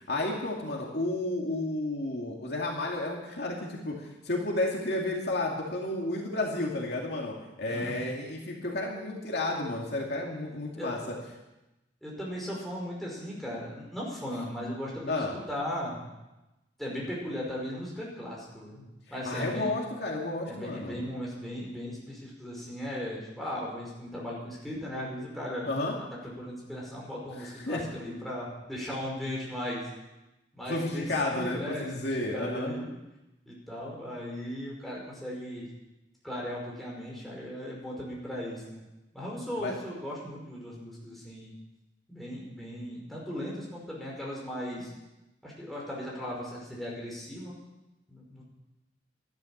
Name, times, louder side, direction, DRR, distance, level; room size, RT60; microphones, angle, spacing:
voice 1, 0.1-11.1 15.1-15.3 19.2-21.0 25.7-26.0 27.4-27.8 30.7-32.7 39.6-39.7, left 2 dB, 65° left, -1 dB, 2.6 m, -32 dB
voice 2, 10.8-11.1 12.0-16.1 16.8-18.8 19.1-19.7 20.4-25.7 26.4-29.8 30.5-32.9 33.5-35.7 36.2-38.8 39.1-41.5 42.1-44.9 45.4-47.6 48.1-48.4, equal, ahead, -5 dB, 5.3 m, -37 dB
13.0 x 12.0 x 7.4 m, 0.99 s
head